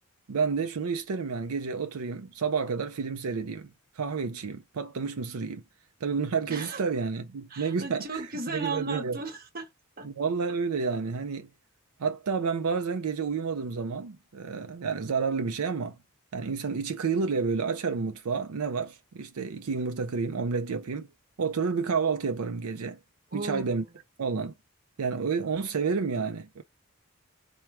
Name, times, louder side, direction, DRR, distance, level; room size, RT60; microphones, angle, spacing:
voice 1, 0.3-3.7 4.0-5.6 6.0-8.2 8.5-9.2 10.0-11.5 12.0-16.0 16.3-21.1 21.4-23.0 23.3-23.8 24.2-24.5 25.0-26.6, right 5 dB, 85° right, 0.5 m, -30 dB
voice 2, 6.5-6.8 7.5-9.7 10.0-10.1 23.3-23.8, right 3 dB, 40° right, 1.0 m, -35 dB
4.5 x 2.2 x 4.7 m
head